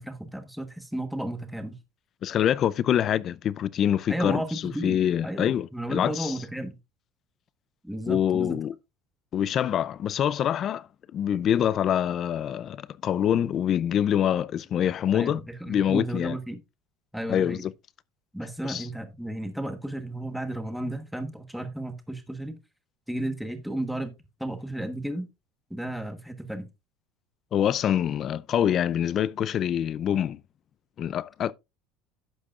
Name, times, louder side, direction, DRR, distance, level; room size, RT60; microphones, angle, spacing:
voice 1, 0.0-1.8 4.1-6.8 7.8-8.6 15.1-16.6 17.1-17.6 18.3-22.6 23.1-24.1 24.4-25.3 25.7-26.7, right 1 dB, ahead, 1.2 m, -33 dB
voice 2, 2.2-6.3 8.1-8.7 9.3-16.4 17.3-17.7 18.6-18.9 27.5-30.4 31.0-31.5, left 10 dB, 35° left, 0.4 m, -25 dB
11.5 x 8.4 x 2.4 m
cardioid pair, 160°, 0 cm